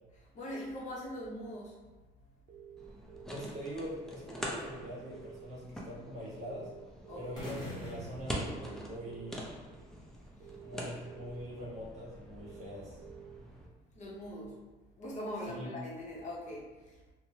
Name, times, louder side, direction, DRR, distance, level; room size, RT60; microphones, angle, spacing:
voice 1, 0.2-1.8 7.1-7.6 10.4-10.5 13.9-14.6 15.0-17.0, equal, 45° left, -4 dB, 0.7 m, -42 dB
sound 1, 2.5-3.5 4.5-5.5 6.4-7.5 8.4-9.4 10.4-11.4 12.4-13.4 14.4-14.5, right 9 dB, 75° right, 0.5 m, -52 dB
sound 2, 2.8-13.7, equal, 5° left, 0.4 m, -45 dB
voice 2, 3.3-6.7 7.1-9.5 10.6-13.0 15.5-15.7, equal, 40° right, -6 dB, 1.2 m, -43 dB
sound 3, 7.4-9.5, equal, 20° left, 1.0 m, -46 dB
3.0 x 2.0 x 2.7 m, 1.2 s
cardioid pair, 110°, 17 cm